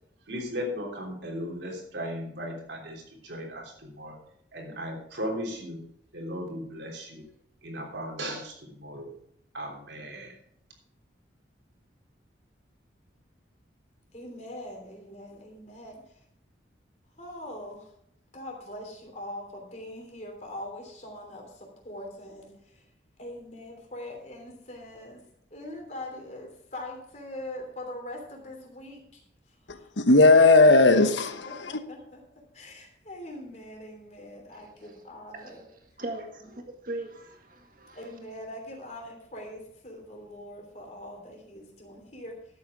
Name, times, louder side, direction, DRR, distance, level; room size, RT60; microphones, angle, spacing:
voice 1, 0.3-4.2 4.5-7.3 7.6-9.1 9.5-10.4, equal, 75° right, 3.3 m, -37 dB
voice 2, 14.1-16.2 17.2-17.9 18.3-22.8 23.2-25.2 25.5-29.2 29.6-29.9 31.4-32.2 32.5-35.6 36.4-36.5 37.9-42.4, left 1 dB, 40° left, 3.1 m, -42 dB
voice 3, 29.7-31.7, left 3 dB, 80° left, 1.1 m, -18 dB
voice 4, 35.3-35.7 36.0-38.0, right 2 dB, 45° right, 1.8 m, -39 dB
12.0 x 8.5 x 4.9 m
head